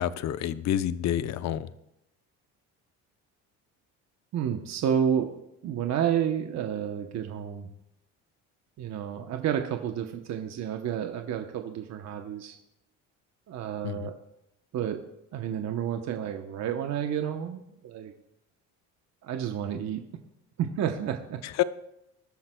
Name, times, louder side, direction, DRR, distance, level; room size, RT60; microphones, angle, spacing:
voice 1, 0.0-1.7 13.8-14.1 21.6-21.7, left 11 dB, 55° left, 14 dB, 0.7 m, -28 dB
voice 2, 4.3-5.3 5.6-7.7 8.8-12.6 13.5-14.1 14.7-15.0 15.3-18.1 19.2-20.0 20.6-21.4, right 9 dB, 50° right, 5 dB, 0.9 m, -30 dB
21.5 x 12.0 x 2.3 m, 0.86 s
cardioid pair, 115°, 34 cm